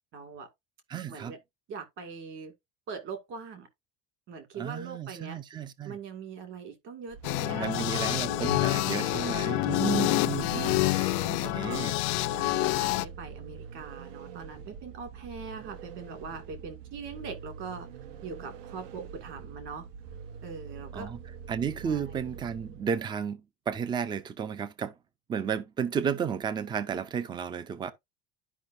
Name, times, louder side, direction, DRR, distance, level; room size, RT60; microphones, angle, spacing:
voice 1, 0.1-0.5 1.1-1.4 1.7-2.5 2.9-3.7 4.3-5.4 5.8-8.5 9.2-9.9 10.5-11.8 12.3-17.9 18.2-19.9 20.4-21.1 21.8-22.0, right 5 dB, 40° right, 2.2 m, -42 dB
voice 2, 0.9-1.3 4.6-6.0 7.5-12.0 20.9-21.2 21.5-24.9 25.3-27.9, right 7 dB, 15° right, 0.5 m, -33 dB
Vehicle, 7.1-23.0, right 6 dB, 70° right, 1.1 m, -45 dB
sound 1, 7.2-13.0, left 22 dB, 60° left, 0.5 m, -27 dB
12.0 x 5.3 x 2.6 m
cardioid pair, 165°, 30 cm